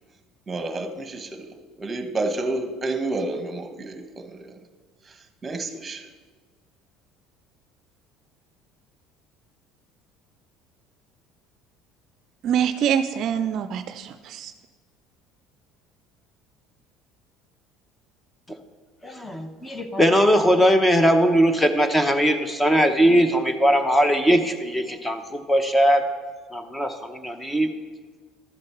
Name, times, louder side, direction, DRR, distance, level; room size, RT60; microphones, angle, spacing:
voice 1, 0.5-4.6 5.1-5.2 5.4-6.1, right 2 dB, 25° right, 7 dB, 1.3 m, -30 dB
voice 2, 12.4-14.5, right 8 dB, 60° right, 11 dB, 0.4 m, -25 dB
voice 3, 19.0-26.0 26.5-27.7, equal, 10° left, 8 dB, 0.9 m, -20 dB
13.0 x 7.7 x 4.4 m, 1.4 s
supercardioid pair, 85°, 0 cm